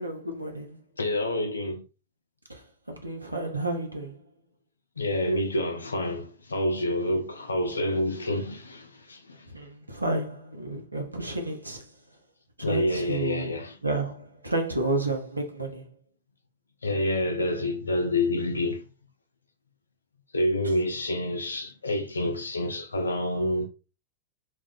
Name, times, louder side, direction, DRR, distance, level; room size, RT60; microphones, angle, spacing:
voice 1, 0.0-0.8 2.5-4.2 9.5-11.9 12.6-15.9, right 2 dB, 85° right, 0.6 m, -31 dB
voice 2, 1.0-1.8 5.0-9.5 12.6-13.8 16.8-18.9 20.3-23.7, left 1 dB, 75° left, 0.4 m, -28 dB
2.2 x 2.1 x 3.7 m
figure-of-eight pair, 90°, 0 cm